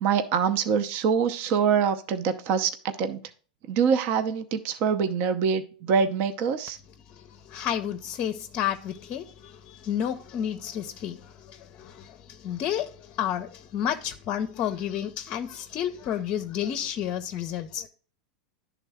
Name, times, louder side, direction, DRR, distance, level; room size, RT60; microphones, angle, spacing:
voice 1, 0.0-2.7 3.0-3.2 3.7-6.8, right 6 dB, 50° right, 0.6 m, -24 dB
voice 2, 7.5-11.2 11.8-12.1 12.4-12.9 13.2-17.9, left 10 dB, 40° left, 0.5 m, -30 dB
10.5 x 3.7 x 3.4 m
hypercardioid pair, 120°, 4 cm